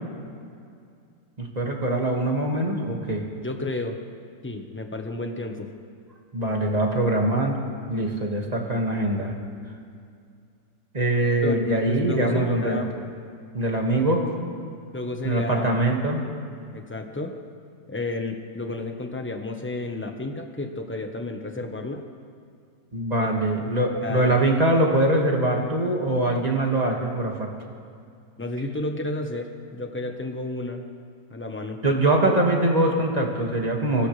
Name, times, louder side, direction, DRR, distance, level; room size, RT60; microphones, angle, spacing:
voice 1, 1.4-3.2 6.3-7.6 7.9-9.3 10.9-12.8 13.5-14.2 15.2-16.2 22.9-27.5 31.8-34.1, right 1 dB, 20° right, 0 dB, 1.9 m, -23 dB
voice 2, 3.4-4.0 4.4-5.7 11.4-12.9 14.9-15.7 16.7-17.4 17.9-22.0 23.2-23.4 23.9-24.3 28.4-30.8 31.3-31.8, left 2 dB, 10° left, 4 dB, 0.7 m, -31 dB
24.5 x 17.0 x 3.3 m, 2.3 s
omnidirectional pair, 2.1 m